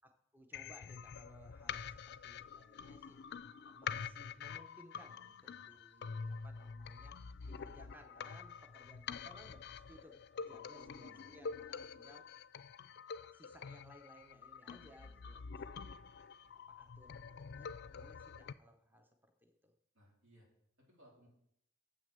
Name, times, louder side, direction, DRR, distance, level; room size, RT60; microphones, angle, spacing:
voice 1, 0.0-3.2 3.6-7.2 7.5-12.3 13.3-16.4 16.7-19.7, equal, 10° right, 5 dB, 0.6 m, -62 dB
sound 1, 0.5-18.5, left 6 dB, 55° left, 0.4 m, -47 dB
voice 2, 5.4-6.5 10.5-11.4 17.8-17.9 19.9-20.5 20.8-21.3, equal, 80° right, -3 dB, 3.7 m, -66 dB
7.4 x 6.3 x 6.7 m, 0.72 s
head